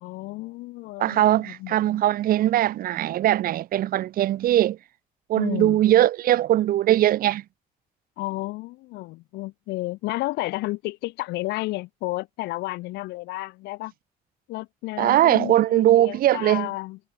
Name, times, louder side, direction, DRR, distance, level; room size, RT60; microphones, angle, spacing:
voice 1, 0.0-2.0 5.4-5.8 8.2-13.9 14.5-15.6 16.0-17.0, left 20 dB, 90° left, 1.2 m, -32 dB
voice 2, 1.0-4.8 5.3-7.4 15.0-16.7, right 13 dB, 60° right, 0.7 m, -20 dB
cardioid pair, 110°, 17 cm